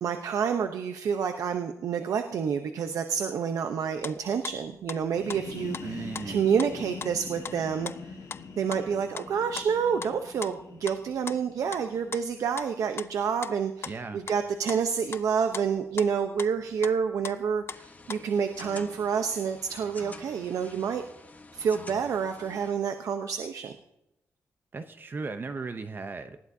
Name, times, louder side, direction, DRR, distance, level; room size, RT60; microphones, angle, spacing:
voice 1, 0.0-8.1 8.6-21.0 21.5-23.7, right 6 dB, 80° right, 7 dB, 0.8 m, -28 dB
sound 1, 4.0-7.2 7.4-7.6 7.8-11.8 12.1-12.3 12.6-12.7 13.0-13.6 13.8-16.9 17.2-18.3, left 6 dB, 45° left, 0.5 m, -40 dB
sound 2, 5.0-12.6, left 5 dB, 70° left, 1.6 m, -44 dB
voice 2, 5.8-6.4 13.9-14.2 24.7-26.4, right 4 dB, 40° right, 9 dB, 0.7 m, -36 dB
sound 3, 17.7-22.7, left 3 dB, 30° left, 1.0 m, -48 dB
19.0 x 14.5 x 2.7 m, 0.88 s
cardioid pair, 100°, 6 cm